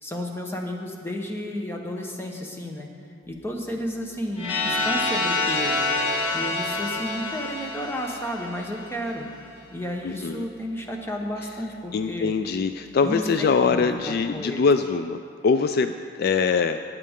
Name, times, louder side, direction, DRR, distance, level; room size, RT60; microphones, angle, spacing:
voice 1, 0.0-2.9 3.3-5.9 6.3-9.3 9.7-12.3 13.0-14.6, equal, 10° left, 1 dB, 1.0 m, -32 dB
sound 1, 4.4-9.2, left 2 dB, 75° left, 2.3 m, -27 dB
voice 2, 10.0-10.5 11.9-16.8, left 5 dB, 50° left, 9 dB, 0.3 m, -23 dB
16.0 x 9.8 x 3.6 m, 2.3 s
head